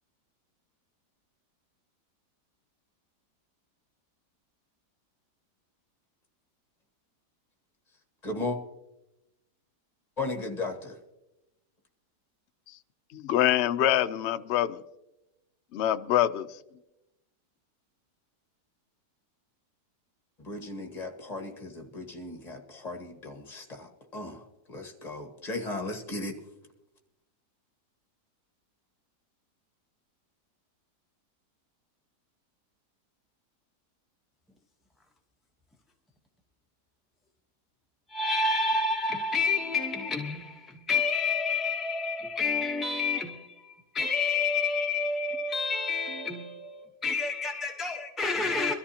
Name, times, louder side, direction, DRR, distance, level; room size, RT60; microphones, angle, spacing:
voice 1, 8.2-8.6 10.2-11.0 20.4-26.3, left 2 dB, 25° left, 1.6 m, -36 dB
voice 2, 13.1-14.8 15.7-16.5, left 12 dB, 80° left, 0.6 m, -25 dB
voice 3, 38.1-48.7, left 4 dB, ahead, 0.7 m, -29 dB
23.0 x 13.5 x 2.9 m
omnidirectional pair, 1.8 m